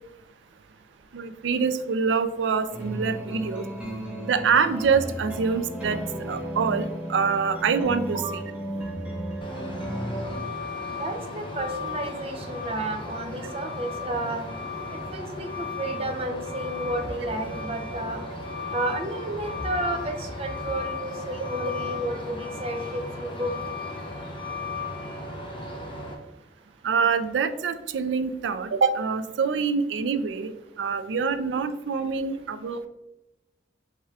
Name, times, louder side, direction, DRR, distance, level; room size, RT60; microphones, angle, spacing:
voice 1, 1.1-3.6 4.2-6.0 6.3-6.8 7.1-8.4 26.8-30.5 30.8-32.9, right 5 dB, 85° right, 11 dB, 0.4 m, -25 dB
sound 1, 2.7-10.4, right 1 dB, 10° right, 1.1 m, -34 dB
Truck, 9.4-26.1, left 3 dB, 30° left, 0.8 m, -35 dB
voice 2, 10.9-14.5 15.1-18.2 18.7-23.5, right 1 dB, 35° right, 4 dB, 0.5 m, -31 dB
4.7 x 4.2 x 2.4 m, 0.94 s
head